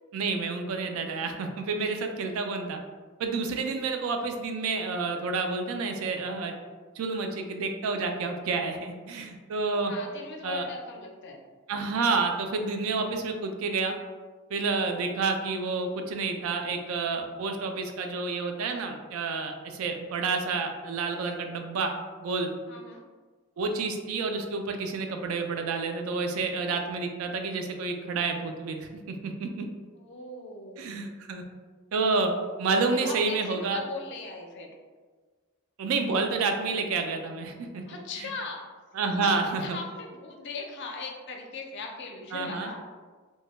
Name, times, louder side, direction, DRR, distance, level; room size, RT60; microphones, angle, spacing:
voice 1, 0.1-2.8 3.2-6.5 7.0-9.9 10.4-10.6 11.7-13.9 14.5-21.9 22.2-22.5 23.6-29.7 30.8-31.4 31.9-32.3 32.6-33.8 35.8-37.8 38.9-39.8 42.3-42.7, right 4 dB, 75° right, 5 dB, 0.3 m, -29 dB
voice 2, 9.9-11.4 22.7-23.0 29.9-31.1 32.9-34.7 37.8-38.6 39.2-42.8, left 3 dB, 55° left, 1 dB, 0.4 m, -39 dB
2.2 x 2.1 x 2.9 m, 1.4 s
head